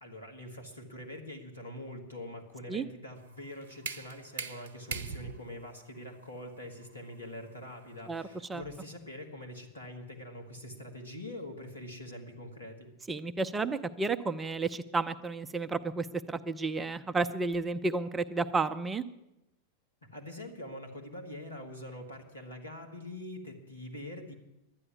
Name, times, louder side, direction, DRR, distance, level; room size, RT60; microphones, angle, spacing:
voice 1, 0.0-12.9 20.0-24.3, left 1 dB, 80° left, 2 dB, 2.0 m, -44 dB
sound 1, 3.2-8.9, right 5 dB, 60° right, 0.7 m, -43 dB
voice 2, 13.1-19.0, right 3 dB, 15° right, 11 dB, 0.6 m, -32 dB
11.5 x 9.9 x 9.7 m, 0.91 s
figure-of-eight pair, 90°, 0 cm